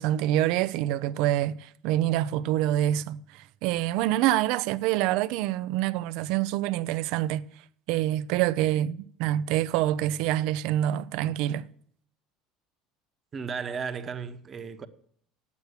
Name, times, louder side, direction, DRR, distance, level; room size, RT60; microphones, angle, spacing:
voice 1, 0.0-7.5 7.9-11.7, right 13 dB, 70° right, 0.6 m, -26 dB
voice 2, 13.3-14.9, right 6 dB, 35° right, 1.1 m, -34 dB
9.2 x 8.4 x 8.2 m
supercardioid pair, 90°, 0 cm